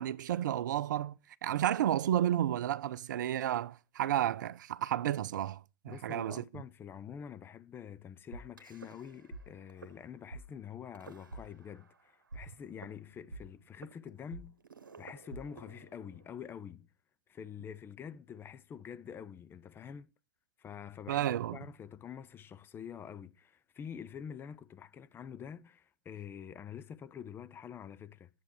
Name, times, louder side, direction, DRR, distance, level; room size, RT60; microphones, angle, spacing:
voice 1, 0.0-6.4 21.1-21.6, right 11 dB, 65° right, 0.6 m, -32 dB
voice 2, 5.9-14.5 15.0-16.9 17.3-20.1 20.6-21.2 21.5-28.3, left 8 dB, 20° left, 0.7 m, -46 dB
sound 1, 8.3-9.4 9.7-9.9 10.3-10.4 10.9-12.0 12.3-16.3, right 3 dB, 90° right, 1.2 m, -48 dB
10.0 x 8.0 x 4.5 m
hypercardioid pair, 110°, 11 cm